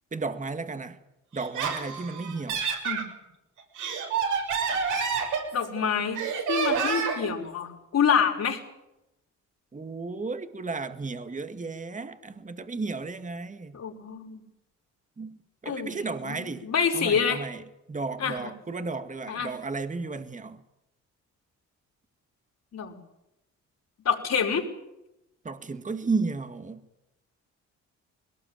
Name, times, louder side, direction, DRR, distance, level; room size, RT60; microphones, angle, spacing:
voice 1, 0.1-1.0 1.3-2.6 9.7-13.8 15.2-16.7 16.9-17.6 17.9-20.6 25.4-26.8, right 4 dB, 25° right, 2.0 m, -33 dB
Laughter, 1.3-3.1 3.6-5.8 6.2-7.3, right 6 dB, 80° right, 6.7 m, -28 dB
voice 2, 5.5-6.2 6.5-8.6 13.7-14.4 15.7-15.9 16.2-17.4 18.2-18.5 19.3-19.5 22.7-23.0 24.1-24.7, left 7 dB, 60° left, 5.4 m, -27 dB
22.0 x 19.0 x 9.0 m
cardioid pair, 90°, 30 cm